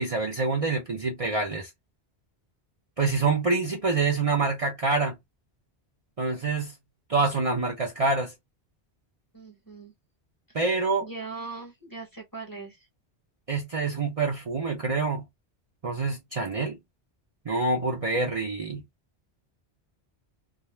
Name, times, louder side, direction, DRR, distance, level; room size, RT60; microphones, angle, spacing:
voice 1, 0.0-1.7 3.0-5.2 6.2-6.7 7.1-8.3 10.5-11.1 13.5-15.2 15.8-16.8 17.5-18.8, right 3 dB, 40° right, 0.6 m, -26 dB
voice 2, 9.3-9.9 11.0-12.9, right 4 dB, 20° left, 0.7 m, -40 dB
2.4 x 2.0 x 3.0 m
omnidirectional pair, 1.1 m